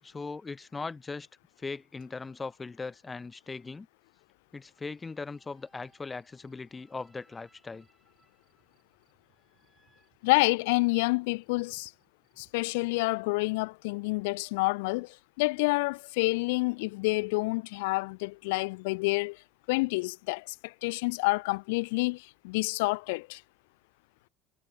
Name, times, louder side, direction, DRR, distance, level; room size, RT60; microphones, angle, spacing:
voice 1, 0.0-1.3 1.6-3.9 4.5-7.9, left 4 dB, 15° left, 0.4 m, -39 dB
sound 1, 5.0-11.1, right 1 dB, 5° right, 7.3 m, -70 dB
sound 2, 5.3-12.8, right 13 dB, 50° right, 3.9 m, -70 dB
voice 2, 10.2-11.9 12.4-19.4 19.7-23.4, left 25 dB, 85° left, 0.3 m, -28 dB
supercardioid pair, 125°, 0 cm